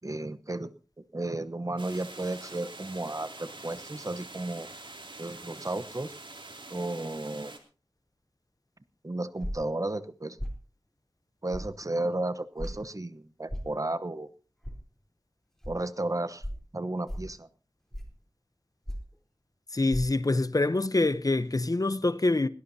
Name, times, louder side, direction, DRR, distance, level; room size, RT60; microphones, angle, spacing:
voice 1, 0.0-0.7 1.1-4.7 5.2-6.1 6.7-7.5 9.0-10.4 11.4-14.3 15.7-16.5 16.7-17.5, right 2 dB, 40° right, 1.0 m, -33 dB
sound 1, 1.8-7.6, right 2 dB, 75° right, 2.8 m, -45 dB
sound 2, 9.4-9.7 10.4-10.6 11.5-11.7 12.6-12.8 13.5-13.7 14.6-14.8 15.6-15.7 16.4-16.6 17.1-17.3 17.9-18.2 18.9-19.1 19.9-20.0, equal, 5° left, 3.8 m, -35 dB
voice 2, 19.7-22.5, left 2 dB, 45° left, 0.8 m, -25 dB
20.5 x 17.5 x 2.8 m
wide cardioid pair, 45°, 9 cm